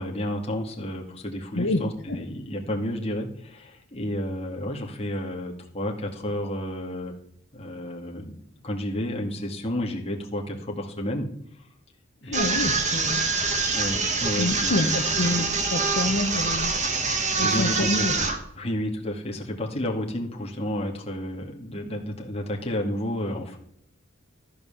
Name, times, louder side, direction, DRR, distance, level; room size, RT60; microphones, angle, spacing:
voice 1, 0.0-7.2 7.5-8.4 8.6-11.3 12.2-12.6 13.7-15.0 15.3-15.5 17.4-18.1 18.6-23.6, left 1 dB, 30° left, 0 dB, 2.1 m, -31 dB
voice 2, 1.5-2.2 12.2-13.2 14.4-16.8 17.4-18.1, left 1 dB, 60° left, 4 dB, 1.0 m, -27 dB
sound 1, 12.3-18.4, right 4 dB, 35° right, 1.8 m, -25 dB
14.0 x 5.4 x 6.9 m, 0.71 s
head